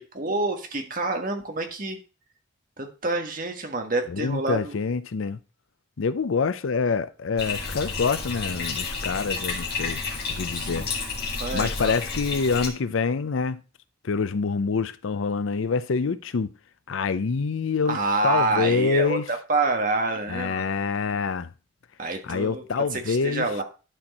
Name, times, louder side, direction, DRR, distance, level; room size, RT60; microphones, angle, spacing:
voice 1, 0.0-2.0 2.8-4.7 10.5-10.8 11.4-11.9 17.9-20.7 22.0-23.6, right 3 dB, 40° right, 1.4 m, -27 dB
voice 2, 4.1-5.4 6.0-10.0 10.3-10.9 11.5-13.6 14.0-16.5 16.9-18.0 18.2-19.2 20.3-21.5 22.2-23.5, left 5 dB, 75° left, 0.5 m, -26 dB
Bathtub (filling or washing), 7.4-12.7, left 4 dB, 50° left, 1.9 m, -31 dB
11.5 x 4.5 x 4.2 m
head